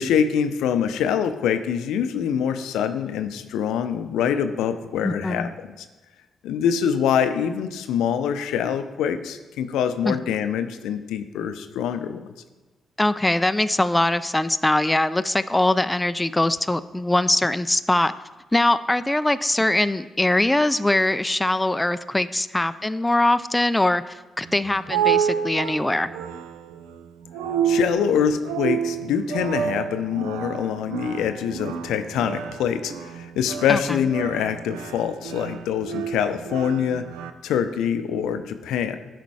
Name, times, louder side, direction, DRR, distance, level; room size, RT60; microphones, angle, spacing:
voice 1, 0.0-5.9 6.4-12.3 27.6-37.1 37.4-39.0, left 8 dB, 75° left, 10 dB, 0.5 m, -25 dB
voice 2, 5.0-5.5 10.1-10.2 13.0-18.1 18.5-26.1 33.7-34.0, left 1 dB, 15° left, 13 dB, 0.4 m, -22 dB
sound 1, 24.4-37.3, right 8 dB, 85° right, 0.4 m, -29 dB
10.5 x 4.2 x 4.8 m, 1.2 s
hypercardioid pair, 45°, 0 cm